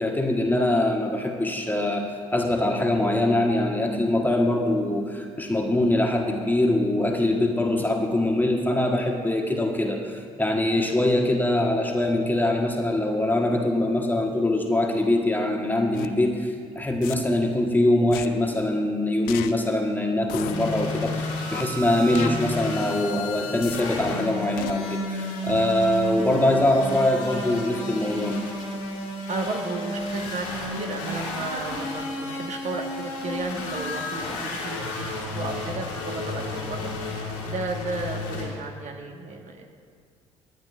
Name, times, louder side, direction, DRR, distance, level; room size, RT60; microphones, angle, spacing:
voice 1, 0.0-28.4, left 1 dB, 10° left, 2 dB, 1.4 m, -23 dB
sound 1, 15.9-16.1 17.0-17.1 18.1-18.3 19.3-19.5 20.3-20.5 21.5-21.6 22.1-22.3 23.6-23.8 24.6-24.7, left 15 dB, 70° left, 0.5 m, -34 dB
sound 2, 20.4-38.5, left 2 dB, 85° left, 2.5 m, -32 dB
voice 2, 29.3-30.5 30.7-39.7, right 3 dB, 50° right, 2 dB, 1.5 m, -33 dB
21.0 x 9.4 x 2.5 m, 2.1 s
hypercardioid pair, 50°, 16 cm